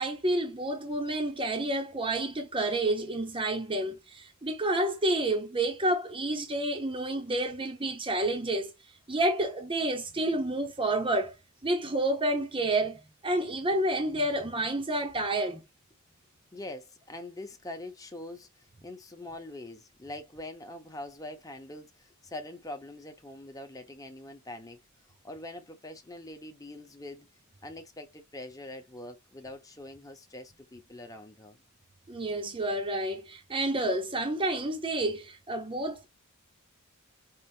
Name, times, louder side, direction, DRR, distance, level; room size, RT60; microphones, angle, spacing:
voice 1, 0.0-8.7 9.1-11.3 11.6-15.6 32.1-36.1, right 1 dB, 25° right, 1.0 m, -29 dB
voice 2, 16.5-24.8 25.2-27.3 27.6-31.6, left 1 dB, 15° left, 1.1 m, -43 dB
5.6 x 2.9 x 2.8 m
head